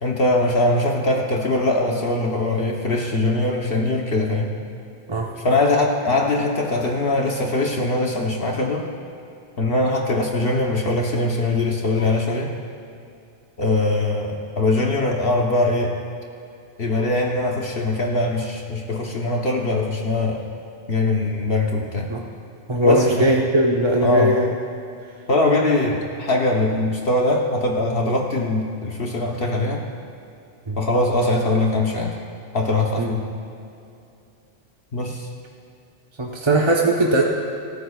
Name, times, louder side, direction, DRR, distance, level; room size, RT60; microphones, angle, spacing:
voice 1, 0.0-4.5 5.4-8.9 9.6-12.5 13.6-16.0 16.8-20.4 20.9-22.1 22.8-23.3 24.0-24.3 25.3-29.8 30.8-32.2 32.5-33.2 34.9-35.3, left 2 dB, 60° left, 0 dB, 1.2 m, -21 dB
voice 2, 22.7-24.5 30.7-30.8 33.0-33.1 36.2-37.2, right 1 dB, 25° right, -2 dB, 1.0 m, -19 dB
25.5 x 13.5 x 2.4 m, 2.6 s
omnidirectional pair, 1.1 m